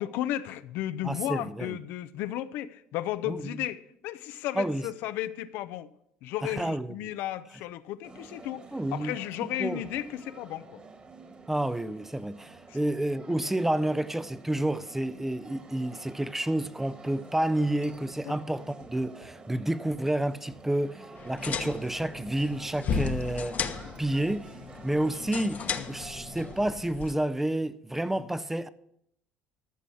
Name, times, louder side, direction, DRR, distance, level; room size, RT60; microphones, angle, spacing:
voice 1, 0.0-5.9 6.2-8.6 8.9-10.8 12.7-12.8 18.2-18.4 25.8-25.9 28.2-28.3, left 13 dB, 75° left, 0.6 m, -34 dB
voice 2, 1.0-1.8 3.3-3.6 4.6-4.8 6.4-7.1 8.7-9.1 9.6-9.8 11.5-23.6 24.0-24.5 24.8-25.6 25.9-28.7, right 1 dB, 10° right, 0.6 m, -30 dB
sound 1, 8.0-26.7, right 3 dB, 30° right, 2.0 m, -49 dB
sound 2, 17.9-18.1 18.8-19.4 20.5-20.7 21.6-21.8 22.1-22.3 23.3-23.5, right 3 dB, 85° right, 4.7 m, -54 dB
sound 3, 21.2-27.1, left 6 dB, 50° left, 1.1 m, -35 dB
14.0 x 6.2 x 7.0 m
supercardioid pair, 90°, 4 cm